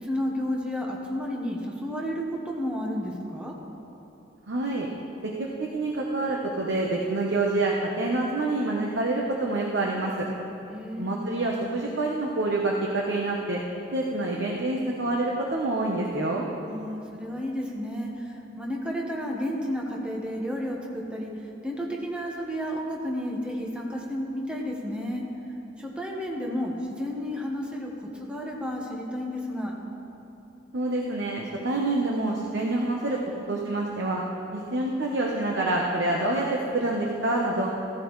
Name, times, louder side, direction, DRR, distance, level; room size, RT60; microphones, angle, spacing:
voice 1, 0.0-3.5 10.6-11.3 16.7-21.3 21.6-25.2 25.8-29.7, equal, 5° right, -2 dB, 1.3 m, -32 dB
voice 2, 4.5-4.9 5.2-5.3 5.6-10.3 11.0-13.6 13.9-16.4 30.7-33.2 33.5-34.2 34.5-37.7, right 2 dB, 65° right, -2 dB, 1.0 m, -27 dB
15.5 x 14.0 x 3.2 m, 2.9 s
head